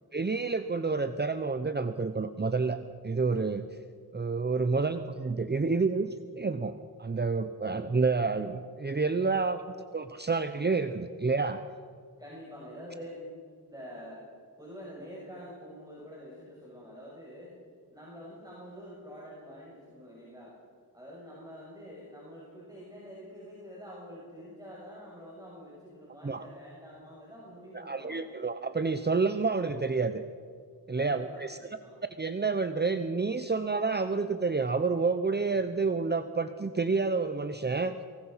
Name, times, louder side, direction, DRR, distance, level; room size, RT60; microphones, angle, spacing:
voice 1, 0.1-2.8 3.0-3.7 4.1-9.6 9.9-11.6 26.2-26.4 27.7-30.2 30.9-31.6 32.2-38.0, right 4 dB, 25° right, 9 dB, 0.8 m, -29 dB
voice 2, 12.2-13.4 13.7-14.2 14.6-17.5 17.9-20.5 20.9-28.2 30.9-32.0, equal, 10° right, -6 dB, 6.9 m, -46 dB
24.5 x 20.5 x 5.7 m, 2.1 s
wide cardioid pair, 95°, 37 cm